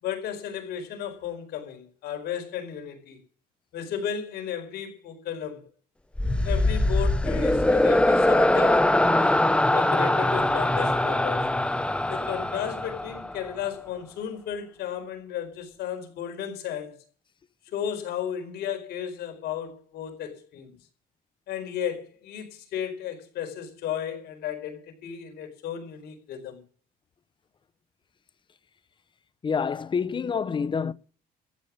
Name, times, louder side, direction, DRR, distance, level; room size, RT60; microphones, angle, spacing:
voice 1, 0.0-3.2 3.7-5.6 6.4-9.5 9.7-11.5 12.1-17.0 17.7-20.7 21.5-26.6, left 9 dB, 70° left, 4.7 m, -34 dB
sound 1, 6.2-13.5, left 1 dB, 5° left, 0.9 m, -22 dB
voice 2, 29.4-30.9, left 6 dB, 30° left, 0.7 m, -27 dB
14.5 x 8.3 x 8.6 m
cardioid pair, 110°, 17 cm